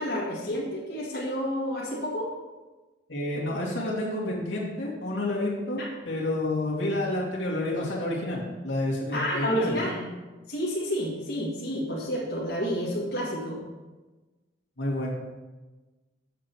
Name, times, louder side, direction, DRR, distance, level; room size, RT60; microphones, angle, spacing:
voice 1, 0.0-2.3 5.8-5.9 9.1-10.1 10.5-13.6, equal, 55° left, -6 dB, 2.0 m, -30 dB
voice 2, 3.1-9.8 14.8-15.1, left 1 dB, 75° left, -5 dB, 2.3 m, -29 dB
7.8 x 7.5 x 4.5 m, 1.2 s
head